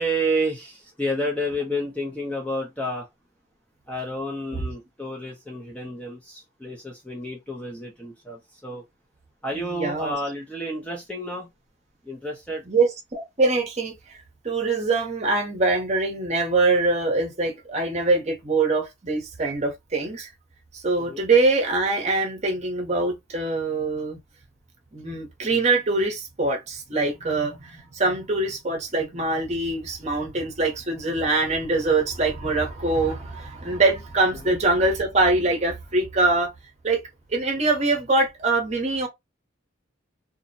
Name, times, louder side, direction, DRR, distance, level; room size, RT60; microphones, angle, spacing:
voice 1, 0.0-3.1 3.9-8.8 9.4-11.5 12.0-12.6 21.0-21.2 34.4-34.5, equal, 5° left, 0.4 m, -30 dB
voice 2, 9.5-10.1 12.7-14.2 14.4-20.3 20.7-24.2 24.9-36.5 36.8-37.0 37.3-39.1, right 3 dB, 35° right, 0.7 m, -23 dB
2.5 x 2.0 x 2.6 m
head